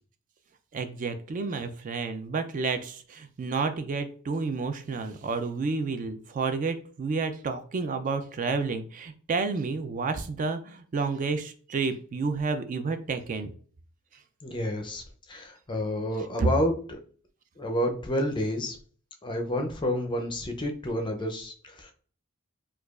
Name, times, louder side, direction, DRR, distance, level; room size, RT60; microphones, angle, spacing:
voice 1, 0.7-13.5 16.4-16.5, right 4 dB, 35° right, 9 dB, 0.3 m, -30 dB
voice 2, 14.4-15.0 15.3-17.0 17.6-18.8 19.2-21.9, left 1 dB, 20° left, 4 dB, 0.5 m, -29 dB
4.6 x 2.3 x 2.3 m, 0.43 s
head